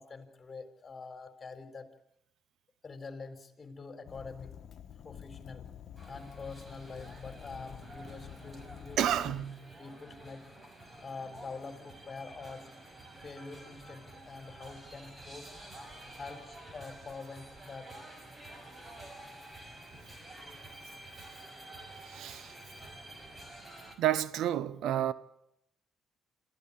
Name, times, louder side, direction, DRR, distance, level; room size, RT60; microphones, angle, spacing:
voice 1, 0.0-1.9 2.8-4.6 5.0-5.7 6.1-9.3 9.8-10.5 11.0-12.7 13.2-15.5 16.2-17.9, left 4 dB, 30° left, 4.1 m, -45 dB
Fire, 4.1-9.5, left 9 dB, 65° left, 1.3 m, -49 dB
sound 1, 6.0-24.0, right 1 dB, 25° right, 5.4 m, -50 dB
voice 2, 9.0-9.6 22.0-22.5 24.0-25.1, right 11 dB, 80° right, 0.9 m, -30 dB
26.5 x 15.0 x 8.7 m
cardioid pair, 90°, 0 cm